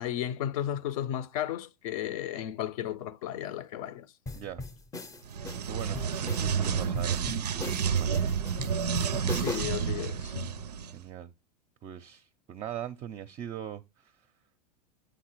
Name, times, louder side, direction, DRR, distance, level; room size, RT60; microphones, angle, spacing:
voice 1, 0.0-4.1 9.3-10.5, left 11 dB, 60° left, 0.6 m, -34 dB
sound 1, 4.3-9.9, left 3 dB, 15° left, 0.5 m, -40 dB
sound 2, 5.2-10.9, right 7 dB, 90° right, 0.4 m, -30 dB
voice 2, 5.7-8.8 9.1-9.3 10.9-11.3 11.8-14.3, right 10 dB, 35° right, 0.5 m, -41 dB
9.1 x 3.9 x 3.0 m
hypercardioid pair, 90°, 20 cm